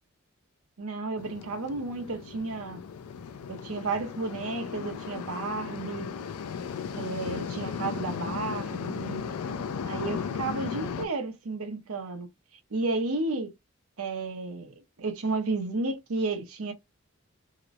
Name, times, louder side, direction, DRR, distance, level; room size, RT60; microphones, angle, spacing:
voice 1, 0.8-2.8 3.5-6.1 6.9-9.2 9.8-12.3 12.7-13.5 14.0-16.7, right 3 dB, 75° right, 0.7 m, -32 dB
sound 1, 1.2-11.1, left 6 dB, 85° left, 0.4 m, -36 dB
2.9 x 2.0 x 2.4 m
head